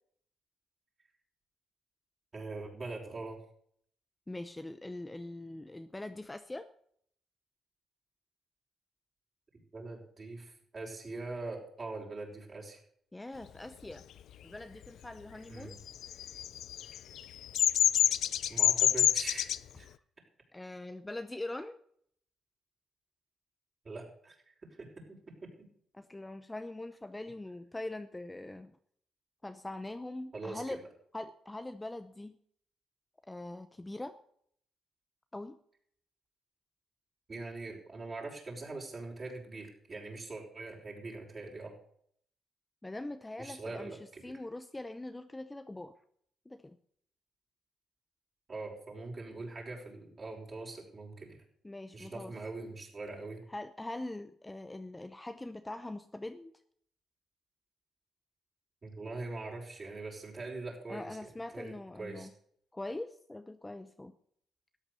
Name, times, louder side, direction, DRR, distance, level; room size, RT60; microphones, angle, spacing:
voice 1, 2.3-3.4 9.7-12.8 15.5-15.7 18.5-19.5 19.8-19.9 23.8-25.7 30.3-30.8 37.3-41.7 43.4-44.3 48.5-51.4 51.9-53.4 58.8-62.3, right 3 dB, 35° right, -2 dB, 5.6 m, -43 dB
voice 2, 4.3-6.7 13.1-14.0 14.4-15.8 20.5-21.8 25.9-28.7 29.4-30.8 31.1-32.4 33.3-34.2 35.3-35.6 42.8-43.9 44.2-45.9 46.5-46.8 51.6-52.3 53.5-56.5 60.9-62.3 62.7-64.1, left 2 dB, 15° left, 10 dB, 0.7 m, -42 dB
Bird vocalization bird call bird song, 15.9-19.6, left 11 dB, 75° left, 0.5 m, -26 dB
13.5 x 9.1 x 6.9 m, 0.65 s
cardioid pair, 90°, 0 cm